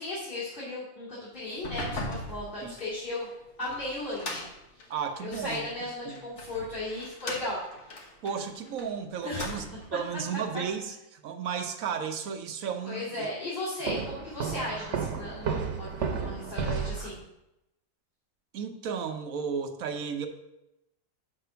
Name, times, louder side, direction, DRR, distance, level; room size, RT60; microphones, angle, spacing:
voice 1, 0.0-3.3 3.6-4.5 5.2-7.6 9.2-9.8 10.5-10.6 12.8-17.2, left 2 dB, 40° left, -10 dB, 2.6 m, -36 dB
sound 1, 1.5-5.6 6.1-8.9 9.2-10.0, left 1 dB, 60° left, 1.5 m, -39 dB
voice 2, 4.9-5.7 6.0-6.2 8.2-9.6 9.9-13.3 14.0-14.1 18.5-20.3, right 7 dB, 80° right, 6 dB, 1.2 m, -34 dB
Walk footsteps, 13.9-17.2, right 6 dB, 60° right, 1.2 m, -32 dB
5.9 x 5.4 x 6.8 m, 0.90 s
omnidirectional pair, 1.4 m